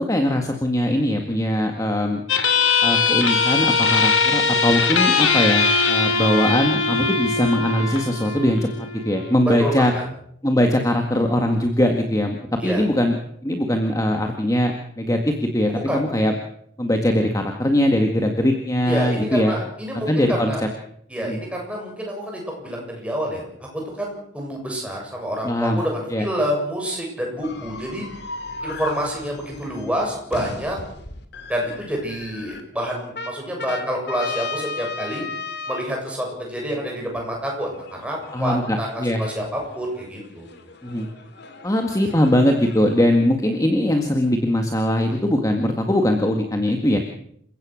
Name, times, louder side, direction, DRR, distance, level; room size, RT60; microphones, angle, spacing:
voice 1, 0.0-2.2 2.8-8.7 9.1-9.9 10.4-12.4 12.6-13.2 13.4-16.3 16.8-19.6 20.1-20.5 21.2-21.4 25.4-25.8 26.1-26.3 38.3-39.2 40.8-41.1 41.6-47.0, left 1 dB, 15° left, 3 dB, 1.8 m, -21 dB
sound 1, 2.3-9.3, left 4 dB, 75° left, 2.6 m, -20 dB
voice 2, 9.6-10.0 12.6-12.8 15.7-16.0 18.8-20.6 21.1-28.1 28.6-30.8 31.5-35.2 35.7-38.9 39.2-40.5, equal, 5° right, -1 dB, 7.3 m, -28 dB
sound 2, 27.4-32.6 33.2-35.9 37.4-43.2, left 3 dB, 55° left, 2.6 m, -36 dB
28.5 x 16.5 x 6.4 m, 0.69 s
head